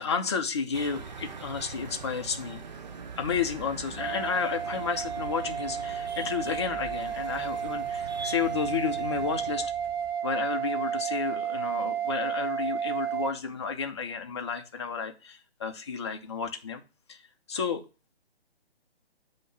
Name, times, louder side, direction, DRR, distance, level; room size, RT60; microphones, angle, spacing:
voice 1, 0.0-2.6 3.2-9.7 10.2-16.8 17.1-17.2 17.5-17.8, left 6 dB, 25° left, 0.4 m, -32 dB
sound 1, 0.7-9.6, right 5 dB, 45° right, 0.6 m, -42 dB
Engine, 3.0-10.1, right 5 dB, 20° right, 2.8 m, -53 dB
sound 2, 4.0-13.3, right 8 dB, 65° right, 1.4 m, -32 dB
6.8 x 2.8 x 5.6 m
figure-of-eight pair, 140°, 32 cm